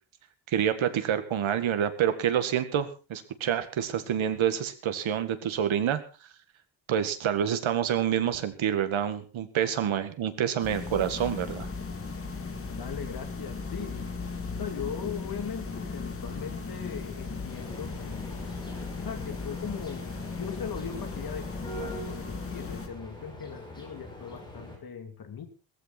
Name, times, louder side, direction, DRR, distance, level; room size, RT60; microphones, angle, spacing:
voice 1, 0.5-6.0 6.9-11.7, right 9 dB, 85° right, 10 dB, 2.0 m, -27 dB
sound 1, 10.6-22.9, left 4 dB, 30° left, 2.3 m, -37 dB
voice 2, 12.8-14.1 14.6-18.3 19.0-25.5, left 7 dB, 50° left, 6 dB, 3.0 m, -39 dB
sound 2, 17.5-24.8, equal, 10° left, 6.3 m, -44 dB
17.5 x 14.5 x 4.2 m, 0.33 s
wide cardioid pair, 165°, 46 cm